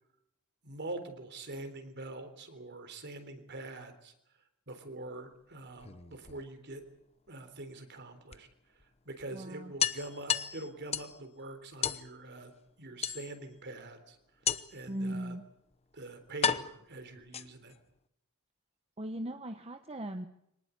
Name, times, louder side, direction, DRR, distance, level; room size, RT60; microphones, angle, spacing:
voice 1, 0.6-4.1 4.7-6.8 7.3-8.5 9.1-14.2 14.7-15.4 15.9-17.7, right 2 dB, 50° right, 8 dB, 3.7 m, -44 dB
sound 1, 5.7-6.8 8.3-8.4 8.8-8.9 9.2-9.3 9.8-11.2 11.8-12.1 13.0-13.6 14.5-14.9 15.7-15.8 16.4-17.8, left 8 dB, 30° left, 0.8 m, -33 dB
voice 2, 9.3-9.7 14.9-15.4 19.0-20.3, right 1 dB, 25° right, 7 dB, 1.2 m, -38 dB
24.5 x 19.0 x 8.3 m, 0.76 s
head